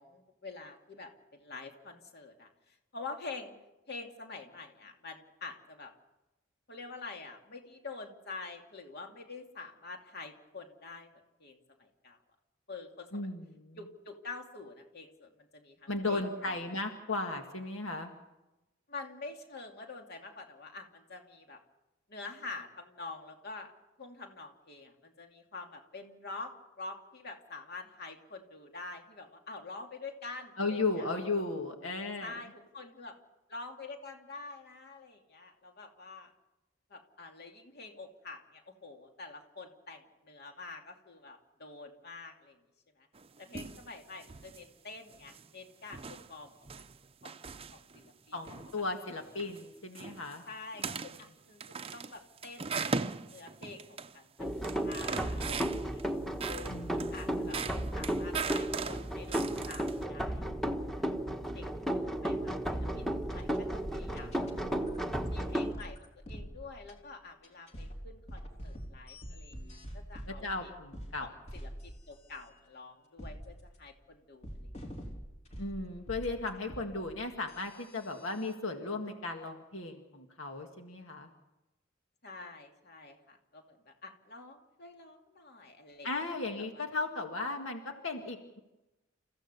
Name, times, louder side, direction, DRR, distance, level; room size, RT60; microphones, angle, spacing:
voice 1, 0.0-3.5 3.9-5.9 6.7-11.1 11.4-12.2 12.7-13.3 13.8-16.6 18.9-21.6 22.1-23.7 24.0-31.1 32.2-33.1 33.5-36.3 36.9-42.6 43.0-43.1 43.4-46.8 47.2-47.3 47.7-48.4 50.4-51.6 51.9-53.0 53.3-56.0 56.5-60.6 61.5-61.7 61.9-64.5 65.3-70.7 71.2-74.7 82.2-86.4 86.7-86.8, left 3 dB, 55° left, 3 dB, 2.6 m, -47 dB
voice 2, 13.1-13.8 15.9-18.1 30.6-32.4 48.3-50.4 50.8-51.0 56.7-57.6 70.3-71.3 75.6-81.3 86.0-88.6, left 3 dB, 80° left, 4 dB, 1.9 m, -36 dB
sound 1, 43.1-43.9 44.2-44.7 45.1-45.5 45.9-48.1 48.4-48.8 49.2-49.6 49.9-50.4 50.7-51.3 51.6-54.2 54.4-56.0 56.4-60.0, right 5 dB, 30° right, 0.7 m, -39 dB
sound 2, 54.4-65.7, right 1 dB, ahead, 1.3 m, -34 dB
sound 3, 63.2-67.0 67.4-72.5 73.2-73.9 74.4-78.5, equal, 35° left, 3.2 m, -46 dB
29.5 x 15.5 x 6.9 m, 1.0 s
head